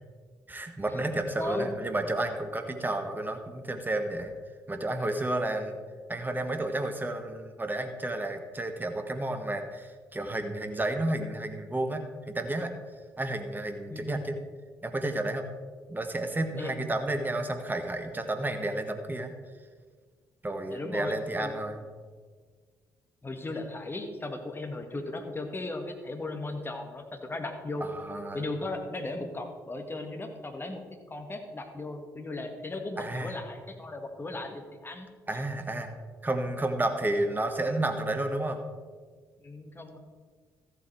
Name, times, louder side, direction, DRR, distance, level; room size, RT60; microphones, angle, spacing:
voice 1, 0.5-4.3 4.7-5.8 6.1-12.7 13.2-14.4 14.8-15.4 15.9-19.3 20.4-21.8 27.8-28.4 33.0-33.4 35.3-35.9 36.2-38.6, right 1 dB, 20° right, 6 dB, 1.6 m, -31 dB
voice 2, 1.4-1.7 13.9-14.3 16.6-16.8 20.7-21.5 23.2-27.9 28.3-30.8 31.1-35.1 39.4-40.0, left 2 dB, 25° left, 5 dB, 1.8 m, -36 dB
14.0 x 8.2 x 4.6 m, 1.6 s
figure-of-eight pair, 45°, 9 cm